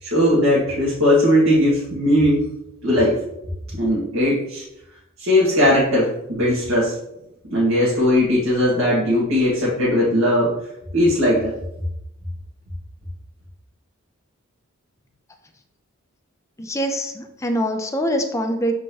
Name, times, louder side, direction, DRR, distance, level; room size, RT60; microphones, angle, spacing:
voice 1, 0.0-2.4 2.8-3.2 3.8-4.6 5.2-6.9 7.5-10.5 10.9-11.5, left 1 dB, 70° right, -8 dB, 1.9 m, -18 dB
voice 2, 16.6-18.7, equal, 15° left, 4 dB, 0.6 m, -24 dB
6.8 x 4.6 x 3.0 m, 0.84 s
head